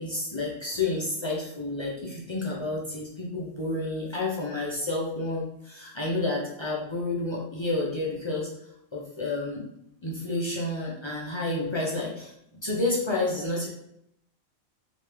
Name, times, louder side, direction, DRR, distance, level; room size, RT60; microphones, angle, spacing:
voice 1, 0.0-8.5 8.9-9.6 10.0-13.7, left 2 dB, 35° left, -4 dB, 0.5 m, -30 dB
3.2 x 2.9 x 3.2 m, 0.75 s
omnidirectional pair, 1.3 m